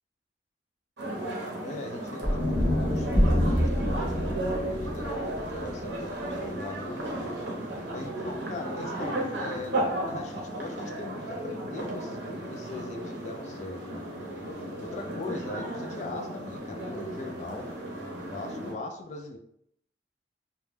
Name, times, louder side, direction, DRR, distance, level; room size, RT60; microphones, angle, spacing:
sound 1, 1.0-18.7, right 1 dB, 75° right, 0.6 m, -34 dB
voice 1, 1.6-3.3 3.6-4.4 4.7-5.1 5.6-7.0 7.9-14.1 14.8-17.8 18.3-19.4, left 3 dB, 40° left, 3 dB, 0.3 m, -40 dB
sound 2, 2.2-6.5, equal, 5° right, 0.9 m, -27 dB
2.2 x 2.0 x 3.1 m, 0.73 s
head